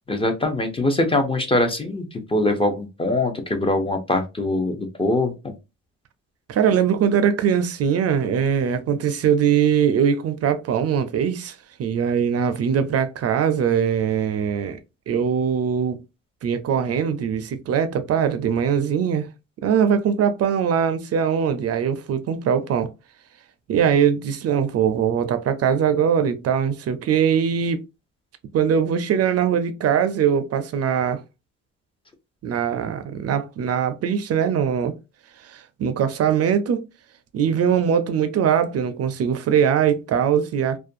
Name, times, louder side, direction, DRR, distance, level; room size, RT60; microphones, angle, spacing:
voice 1, 0.1-5.5, left 2 dB, 20° left, 0.5 m, -23 dB
voice 2, 6.5-14.8 15.1-16.0 16.4-19.3 19.6-22.9 23.7-27.8 28.5-31.2 32.4-34.9 35.4-36.8 37.3-40.8, right 8 dB, 55° right, 0.4 m, -21 dB
2.4 x 2.2 x 2.5 m
cardioid pair, 90°, 30 cm